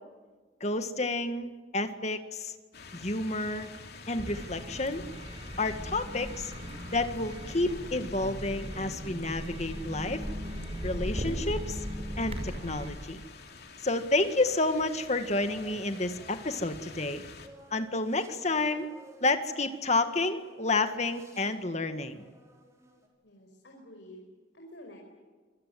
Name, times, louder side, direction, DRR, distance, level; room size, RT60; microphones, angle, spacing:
voice 1, 0.6-2.5 2.9-3.7 4.1-5.0 5.6-6.5 6.9-10.3 10.8-11.8 12.2-13.2 13.8-17.2 17.7-18.9 19.2-22.2, left 2 dB, 40° left, 8 dB, 1.9 m, -30 dB
sound 1, 2.7-17.5, left 4 dB, 60° left, 3.1 m, -48 dB
sound 2, 4.1-12.9, equal, 35° right, 5.7 m, -38 dB
sound 3, 14.4-23.1, right 1 dB, 15° right, 5.3 m, -55 dB
voice 2, 23.2-25.0, equal, 75° left, 1 dB, 5.4 m, -50 dB
27.0 x 22.5 x 9.4 m, 1.4 s
head